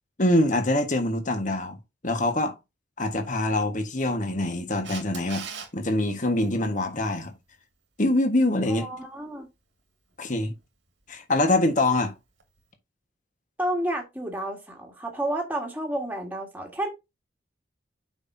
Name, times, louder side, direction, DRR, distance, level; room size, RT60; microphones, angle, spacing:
voice 1, 0.2-1.8 2.0-2.5 3.0-5.4 5.7-7.3 8.0-8.9 10.2-10.5 11.1-12.1, left 1 dB, 40° left, 1.5 m, -24 dB
Camera, 4.8-5.7 12.4-12.5, right 6 dB, 70° right, 2.1 m, -37 dB
voice 2, 8.7-9.5 13.6-16.9, right 1 dB, 10° right, 1.7 m, -30 dB
7.9 x 5.8 x 2.7 m
head